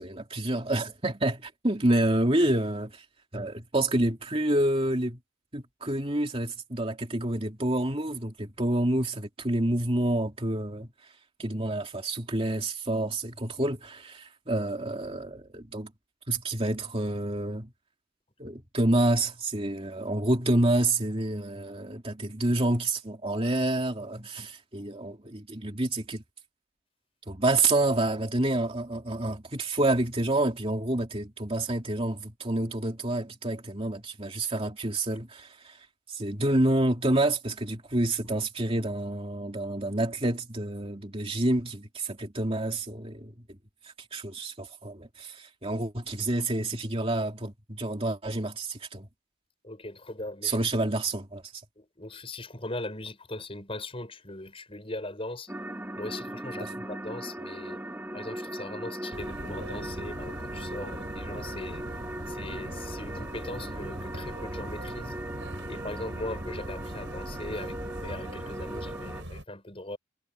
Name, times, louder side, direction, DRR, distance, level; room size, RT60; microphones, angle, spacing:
voice 1, 0.0-3.0 3.3-5.2 5.5-10.9 11.4-15.9 16.3-17.7 18.4-26.2 27.3-43.6 43.8-49.1 50.4-51.6 56.6-56.7, right 1 dB, 25° right, 2.9 m, -28 dB
voice 2, 49.6-50.6 51.8-55.5 55.9-57.8 58.1-61.9 62.3-65.2 65.7-70.0, left 2 dB, 25° left, 5.7 m, -39 dB
sound 1, 55.5-69.2, right 1 dB, 10° right, 2.4 m, -39 dB
sound 2, 59.1-69.4, right 1 dB, 60° right, 6.1 m, -40 dB
head